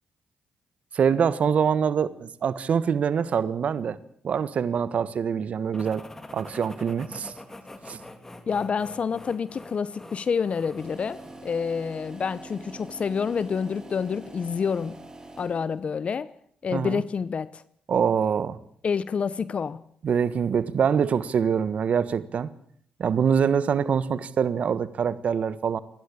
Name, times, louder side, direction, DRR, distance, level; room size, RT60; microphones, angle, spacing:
voice 1, 0.9-4.0 4.2-6.0 6.3-7.3 7.9-8.0 16.7-17.0 17.9-18.6 20.0-22.5 23.0-25.8, right 7 dB, 60° right, 1.4 m, -24 dB
sound 1, 5.7-11.5, left 2 dB, 20° left, 3.4 m, -45 dB
voice 2, 8.5-15.0 15.4-16.3 16.6-17.6 18.8-19.8, left 6 dB, 50° left, 0.8 m, -28 dB
sound 2, 10.8-15.9, right 2 dB, 25° right, 4.1 m, -44 dB
27.5 x 11.5 x 8.7 m
supercardioid pair, 60°, 3 cm